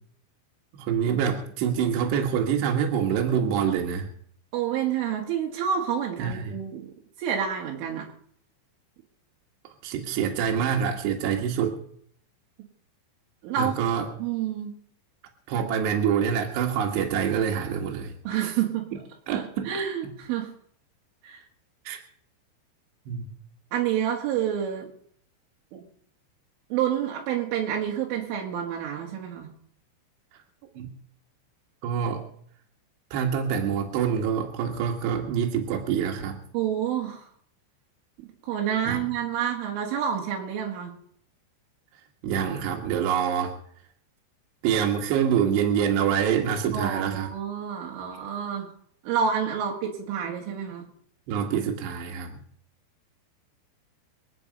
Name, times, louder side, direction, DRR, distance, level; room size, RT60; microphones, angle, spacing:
voice 1, 0.7-4.1 6.2-6.6 9.8-11.8 13.6-14.1 15.5-18.1 18.4-18.6 18.9-19.0 19.3-19.7 21.9-22.0 23.1-23.3 30.8-30.9 31.8-32.3 33.1-36.4 38.9-39.1 42.2-43.6 44.6-47.3 51.3-52.4, right 8 dB, 70° right, 1 dB, 3.4 m, -26 dB
voice 2, 4.5-6.9 7.2-8.1 13.4-13.8 14.2-14.7 18.3-18.9 19.3-20.5 21.2-21.4 23.7-24.9 25.7-25.8 26.7-29.5 36.5-37.3 38.4-40.9 46.7-48.7 49.0-50.9, right 8 dB, 85° right, -1 dB, 4.4 m, -28 dB
25.5 x 8.9 x 5.3 m, 0.63 s
omnidirectional pair, 5.5 m